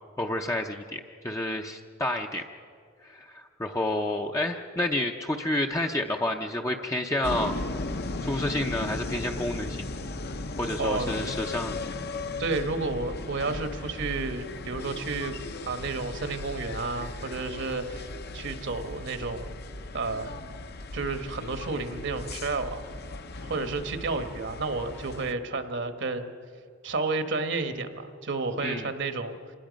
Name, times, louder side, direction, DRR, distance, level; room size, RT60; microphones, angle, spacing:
voice 1, 0.2-2.4 3.0-7.6 8.2-9.9 10.6-11.8 28.6-28.9, left 1 dB, 15° left, 2 dB, 0.6 m, -29 dB
sound 1, 7.2-25.3, left 2 dB, 55° left, 0.8 m, -37 dB
voice 2, 10.8-11.2 12.4-15.3 15.6-19.6 19.9-20.4 20.9-22.8 23.4-26.3 26.8-29.4, right 3 dB, 60° right, 8 dB, 1.2 m, -31 dB
26.5 x 19.5 x 5.2 m, 2.3 s
head